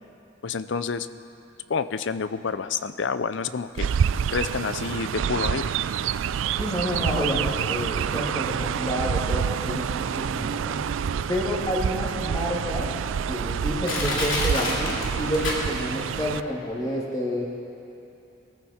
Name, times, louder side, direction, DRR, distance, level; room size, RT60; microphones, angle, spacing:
voice 1, 0.4-1.1 1.7-3.9 4.3-5.8, left 5 dB, 65° left, 13 dB, 0.5 m, -28 dB
Chirp tweet, 3.8-16.4, right 7 dB, 80° right, 0.3 m, -27 dB
voice 2, 6.6-10.8 11.3-12.9 13.3-17.4, equal, 20° left, -4 dB, 2.3 m, -29 dB
Crushing, 13.8-16.0 16.4-16.5, left 2 dB, 85° left, 3.1 m, -28 dB
23.5 x 14.0 x 4.3 m, 2.9 s
head